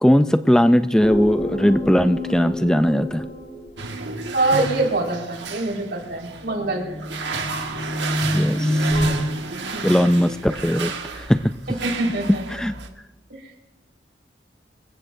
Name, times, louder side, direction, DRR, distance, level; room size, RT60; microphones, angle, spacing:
voice 1, 0.0-3.2 8.3-8.9 9.8-11.4 12.5-12.7, equal, 5° left, 10 dB, 0.4 m, -19 dB
sound 1, 1.0-4.1 6.4-9.1, equal, 35° left, 3.1 m, -27 dB
sound 2, 3.8-12.9, right 4 dB, 85° right, 1.8 m, -32 dB
voice 2, 4.3-6.8 9.7-10.0 11.7-12.4 13.3-13.5, right 2 dB, 70° right, -1 dB, 4.7 m, -24 dB
26.5 x 15.5 x 2.7 m, 1.1 s
head